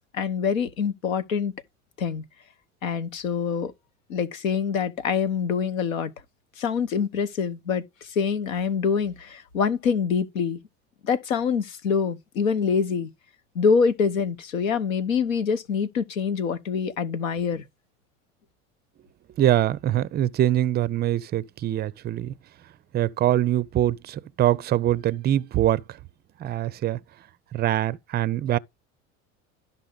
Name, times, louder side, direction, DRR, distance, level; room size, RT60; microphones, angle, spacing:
voice 1, 0.1-1.5 2.0-2.2 2.8-3.7 4.1-6.1 6.6-10.6 11.0-13.1 13.5-17.6, left 6 dB, 85° left, 1.0 m, -25 dB
voice 2, 19.4-22.3 22.9-25.8 26.4-27.0 27.5-28.6, right 12 dB, 25° right, 0.4 m, -23 dB
12.0 x 5.5 x 3.8 m
hypercardioid pair, 80°, 40 cm